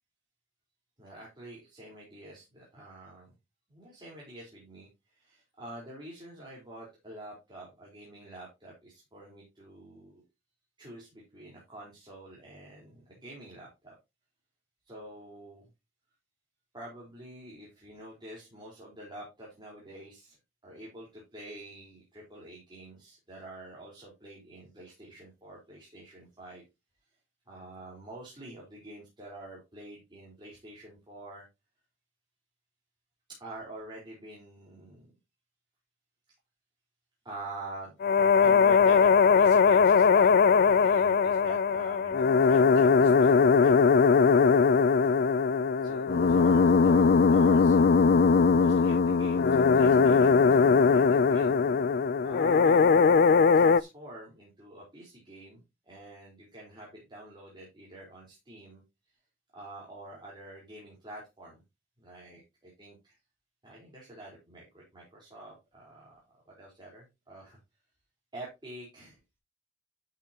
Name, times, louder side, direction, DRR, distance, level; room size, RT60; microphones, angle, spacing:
voice 1, 1.0-3.3 3.7-10.2 10.8-13.9 14.9-15.7 16.7-20.4 20.6-26.6 27.5-31.4 33.3-35.1 37.2-37.9 38.4-43.7 45.8-48.2 48.4-51.7 52.2-52.9 53.5-58.8 59.5-61.6 62.0-63.2 63.6-66.2 66.5-67.6 68.3-69.2, right 1 dB, 25° right, -5 dB, 4.2 m, -46 dB
sound 1, 38.0-53.8, left 5 dB, 55° left, 0.4 m, -21 dB
12.0 x 6.9 x 2.9 m, 0.24 s
head